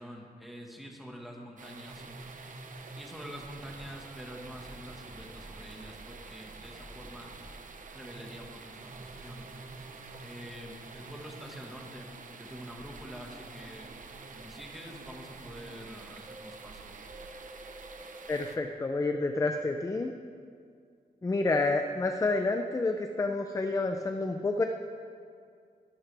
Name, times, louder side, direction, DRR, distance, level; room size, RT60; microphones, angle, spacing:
voice 1, 0.0-2.0 3.0-7.4 7.9-9.5 10.2-13.9 14.3-16.9, equal, ahead, 0 dB, 1.6 m, -46 dB
sound 1, 1.6-18.6, right 4 dB, 50° right, 0.9 m, -48 dB
sound 2, 1.9-3.1 3.6-3.9 4.4-5.9 6.4-7.5 8.0-8.3 8.8-10.3 10.8-11.9 12.4-12.6 13.1-14.4 14.9-15.8 16.3-16.6 17.1-18.6 19.1-19.8, right 1 dB, 35° right, 1.4 m, -50 dB
voice 2, 18.3-20.1 21.2-24.6, left 3 dB, 20° left, 5 dB, 0.5 m, -29 dB
21.0 x 11.5 x 3.4 m, 2.3 s
wide cardioid pair, 165°, 17 cm